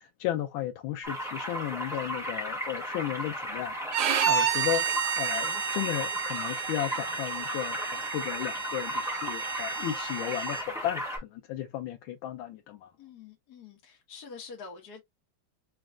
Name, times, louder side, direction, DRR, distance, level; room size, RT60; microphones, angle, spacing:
voice 1, 0.0-3.7 4.3-12.9, left 12 dB, 85° left, 1.4 m, -34 dB
sound 1, 1.0-11.2, equal, ahead, 1.6 m, -35 dB
Bowed string instrument, 3.9-10.7, right 8 dB, 85° right, 1.6 m, -31 dB
voice 2, 13.0-15.0, left 5 dB, 55° left, 1.6 m, -46 dB
4.3 x 3.0 x 2.4 m
omnidirectional pair, 2.1 m